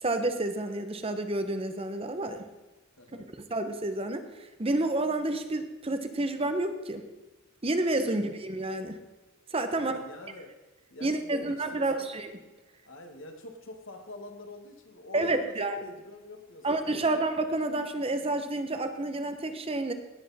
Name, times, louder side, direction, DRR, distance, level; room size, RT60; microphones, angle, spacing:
voice 1, 0.0-2.5 3.5-7.0 7.6-9.0 9.5-10.1 11.0-12.4 15.1-15.8 16.6-19.9, right 2 dB, 25° right, 8 dB, 0.8 m, -29 dB
voice 2, 9.7-10.6 10.9-12.0 12.8-15.5 15.8-17.2, left 2 dB, 60° left, 4 dB, 1.7 m, -46 dB
17.5 x 8.1 x 4.2 m, 1.1 s
head